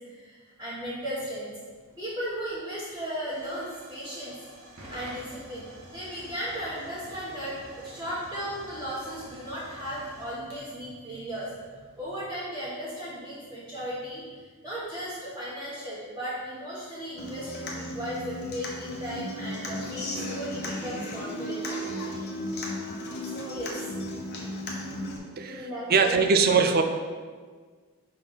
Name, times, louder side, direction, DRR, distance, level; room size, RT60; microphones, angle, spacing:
voice 1, 0.1-1.5 2.0-4.4 4.9-11.5 11.8-14.2 14.6-22.2 23.3-23.8 25.4-26.2, equal, 15° right, -11 dB, 1.3 m, -36 dB
Hiss / Fire / Tick, 1.6-12.0, right 1 dB, 80° right, 1.6 m, -49 dB
Human voice / Acoustic guitar, 17.2-25.2, left 1 dB, 45° left, 1.0 m, -35 dB
voice 2, 25.4-26.8, right 5 dB, 45° right, 7 dB, 0.5 m, -22 dB
5.3 x 4.1 x 5.6 m, 1.6 s
head